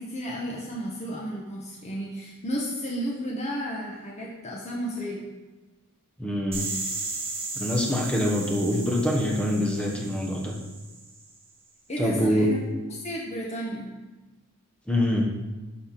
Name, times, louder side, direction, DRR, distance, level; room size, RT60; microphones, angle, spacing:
voice 1, 0.0-5.2 11.9-12.6 12.9-13.9, equal, 30° left, -3 dB, 1.3 m, -33 dB
voice 2, 6.2-6.7 7.6-10.5 12.0-12.5 14.9-15.3, left 1 dB, 5° left, 0 dB, 1.2 m, -25 dB
sound 1, 6.5-11.3, right 3 dB, 25° right, 2.2 m, -35 dB
11.5 x 4.3 x 5.9 m, 1.2 s
head